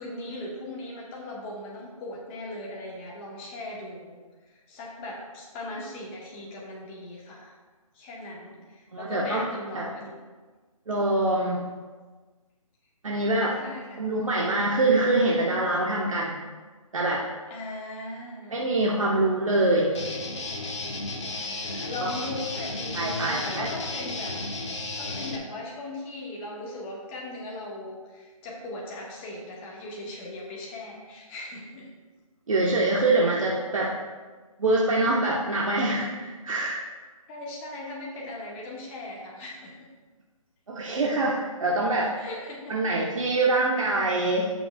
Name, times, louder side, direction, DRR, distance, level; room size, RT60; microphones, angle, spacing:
voice 1, 0.0-4.2 4.5-7.5 7.9-10.2 13.5-14.2 17.5-18.6 21.3-24.4 25.0-31.9 37.3-39.9 42.0-42.8, left 2 dB, 20° left, -3 dB, 1.6 m, -38 dB
voice 2, 8.9-9.4 9.7-9.9 10.9-11.7 13.0-13.5 14.0-16.4 16.9-17.2 18.5-20.0 22.0-22.1 22.9-23.7 32.5-33.9 34.6-36.8 40.7-42.1 42.7-44.5, right 2 dB, 65° right, -4 dB, 1.3 m, -24 dB
Guitar, 19.9-25.4, left 2 dB, 55° left, 1.3 m, -34 dB
16.0 x 5.9 x 2.4 m, 1.4 s
figure-of-eight pair, 145°, 18 cm